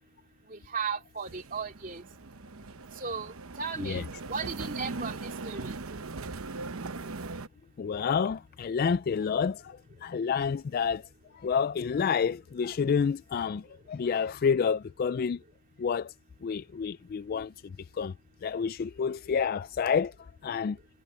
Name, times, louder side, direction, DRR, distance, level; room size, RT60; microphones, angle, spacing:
voice 1, 0.5-2.0 3.0-5.8, right 5 dB, 40° right, 2.8 m, -36 dB
sound 1, 1.3-7.5, right 3 dB, 80° right, 0.9 m, -39 dB
voice 2, 7.8-11.1 11.3-15.4 15.8-16.1 16.4-18.1 18.4-20.8, left 6 dB, 45° left, 0.3 m, -29 dB
head